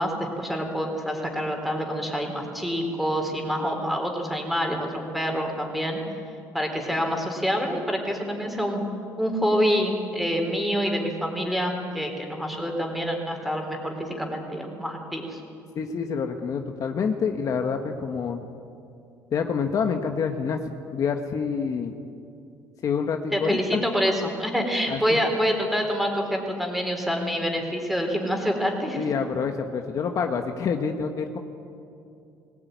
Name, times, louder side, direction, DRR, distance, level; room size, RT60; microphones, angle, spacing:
voice 1, 0.0-6.0 6.5-8.8 9.2-15.4 23.3-29.0, equal, ahead, 2 dB, 4.1 m, -26 dB
voice 2, 15.7-18.4 19.3-20.6 20.9-21.9 22.8-23.8 24.9-25.2 29.0-31.4, left 6 dB, 50° left, 5 dB, 1.4 m, -27 dB
21.0 x 18.5 x 9.5 m, 2.6 s
cardioid pair, 115°, 7 cm